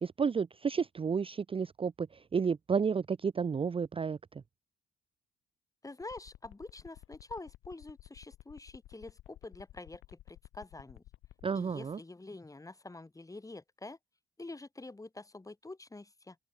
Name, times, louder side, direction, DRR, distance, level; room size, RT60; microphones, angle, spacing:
voice 1, 0.0-4.4 11.4-12.0, right 6 dB, 25° right, 0.6 m, -32 dB
voice 2, 5.8-11.0 11.5-14.0 14.4-16.4, left 2 dB, 15° left, 3.4 m, -47 dB
sound 1, 6.0-11.4, left 15 dB, 85° left, 2.3 m, -53 dB
open air
cardioid pair, 90°, 20 cm